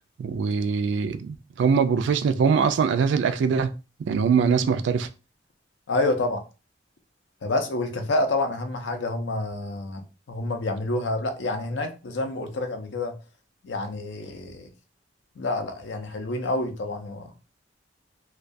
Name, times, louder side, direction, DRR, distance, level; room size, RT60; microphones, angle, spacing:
voice 1, 0.2-3.7 4.1-5.1, right 6 dB, 75° right, 0.3 m, -22 dB
voice 2, 5.9-6.4 7.4-10.0 10.3-13.2 13.6-14.7 15.4-17.3, left 2 dB, 85° left, 0.5 m, -28 dB
2.2 x 2.2 x 2.5 m
head